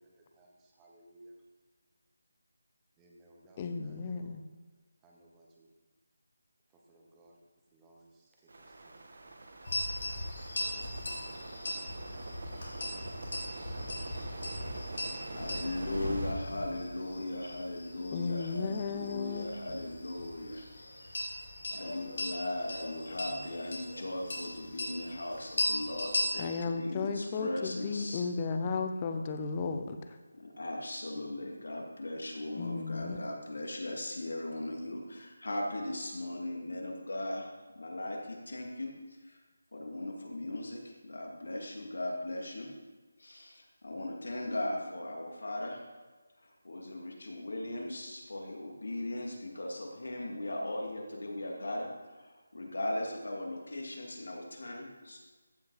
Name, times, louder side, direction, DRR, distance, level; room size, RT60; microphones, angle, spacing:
voice 1, 0.0-1.3 3.0-4.4 5.0-5.7 6.7-7.3 7.7-9.4 10.0-11.4, right 1 dB, 10° right, 1.0 m, -61 dB
voice 2, 3.6-4.4 18.1-19.5 26.4-30.0 32.6-33.2, left 4 dB, 15° left, 0.5 m, -34 dB
sound 1, 8.5-16.3, right 2 dB, 50° right, 1.3 m, -45 dB
sound 2, 9.7-26.6, left 1 dB, 50° left, 3.0 m, -38 dB
voice 3, 15.3-20.7 21.0-21.3 21.7-28.2 30.3-37.5 37.7-38.9 39.2-39.4 39.7-42.7 43.2-45.8 46.4-51.9 52.2-55.2, left 1 dB, 75° left, 2.5 m, -38 dB
14.5 x 5.4 x 4.1 m
figure-of-eight pair, 175°, 0 cm